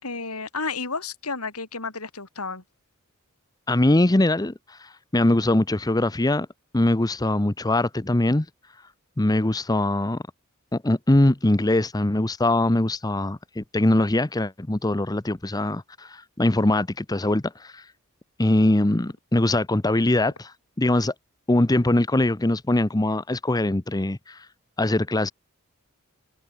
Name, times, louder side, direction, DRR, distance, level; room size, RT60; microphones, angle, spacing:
voice 1, 0.0-2.6, left 4 dB, 85° left, 5.8 m, -31 dB
voice 2, 3.7-6.5 6.7-8.5 9.2-10.2 10.7-17.8 18.4-21.1 21.5-24.5 24.8-25.3, left 1 dB, 15° left, 0.7 m, -22 dB
head